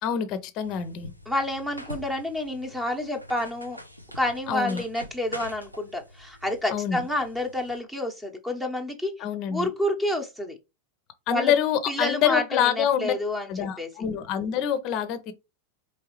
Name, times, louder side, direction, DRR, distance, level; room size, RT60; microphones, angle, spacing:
voice 1, 0.0-1.1 4.5-4.8 6.7-7.0 9.2-9.7 11.3-13.1 13.5-15.3, left 9 dB, 40° left, 0.7 m, -26 dB
sound 1, 0.6-7.8, left 1 dB, 90° right, 0.7 m, -44 dB
voice 2, 1.3-3.8 4.1-9.1 9.5-10.6 11.3-11.5 11.9-13.9, left 1 dB, 5° right, 1.0 m, -29 dB
4.7 x 3.1 x 3.1 m
figure-of-eight pair, 90°, 0 cm